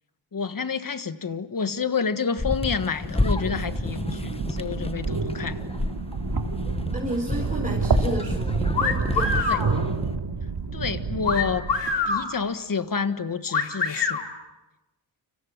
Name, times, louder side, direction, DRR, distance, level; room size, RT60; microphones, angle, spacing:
voice 1, 0.3-5.6 9.5-9.6 10.7-11.7 12.1-14.2, left 5 dB, 45° left, 11 dB, 1.6 m, -29 dB
sound 1, 2.4-10.2, left 2 dB, 10° left, 1.0 m, -31 dB
sound 2, 3.0-12.2, right 4 dB, 55° right, 2.6 m, -29 dB
voice 2, 6.9-9.9, right 1 dB, 15° right, -1 dB, 4.5 m, -32 dB
sound 3, 8.7-9.7 11.2-12.3 13.5-14.2, left 5 dB, 60° left, 3.3 m, -24 dB
30.0 x 27.0 x 7.4 m, 1.0 s
wide cardioid pair, 95°, 47 cm